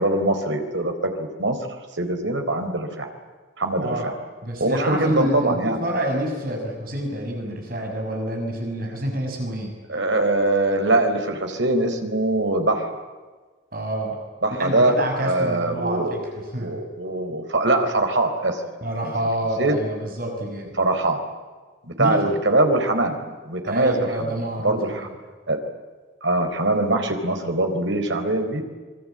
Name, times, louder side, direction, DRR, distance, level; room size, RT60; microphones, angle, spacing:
voice 1, 0.0-1.6 1.9-3.1 3.6-4.1 4.6-5.8 9.9-13.0 14.4-18.6 19.6-19.8 20.8-21.2 21.8-24.3 24.6-25.1 25.5-25.6 26.2-28.6, right 2 dB, 80° right, 6 dB, 4.2 m, -22 dB
voice 2, 3.8-4.1 4.4-9.7 13.7-14.2 14.6-16.7 18.8-20.7 22.0-22.4 23.6-25.1, right 1 dB, 50° right, 2 dB, 6.3 m, -28 dB
27.0 x 23.0 x 8.9 m, 1.4 s
head